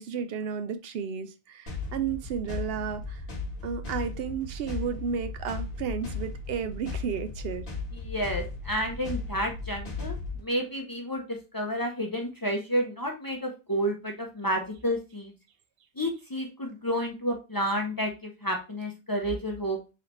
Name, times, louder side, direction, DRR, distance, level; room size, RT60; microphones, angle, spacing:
voice 1, 0.0-3.2 3.6-7.7, right 6 dB, 75° right, 0.8 m, -33 dB
sound 1, 1.7-10.4, left 3 dB, 60° left, 1.4 m, -36 dB
voice 2, 7.9-15.3 16.0-19.8, equal, 25° left, 0.6 m, -30 dB
3.9 x 3.3 x 3.0 m
omnidirectional pair, 1.0 m